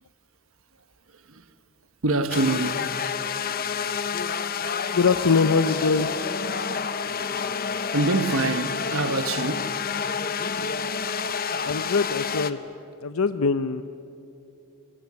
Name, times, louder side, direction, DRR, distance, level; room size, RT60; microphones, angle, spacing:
voice 1, 1.1-1.5 2.0-2.9 7.9-9.8, right 2 dB, 65° right, 1.3 m, -25 dB
sound 1, 2.3-12.5, left 6 dB, 40° left, 0.9 m, -29 dB
voice 2, 4.9-6.1 10.6-10.7 11.6-12.6 13.0-13.8, left 4 dB, 70° left, 0.7 m, -23 dB
27.0 x 22.5 x 9.6 m
head